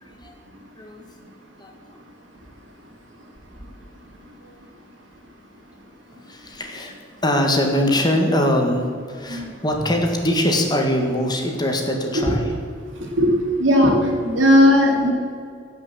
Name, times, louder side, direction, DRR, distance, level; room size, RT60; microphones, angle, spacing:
voice 1, 0.0-0.3 0.8-1.0 1.6-1.7 6.3-6.9 7.2-12.5, left 1 dB, 20° left, 2 dB, 1.7 m, -22 dB
voice 2, 13.6-15.1, equal, 75° right, 0 dB, 2.8 m, -16 dB
16.0 x 6.1 x 7.6 m, 2.2 s
head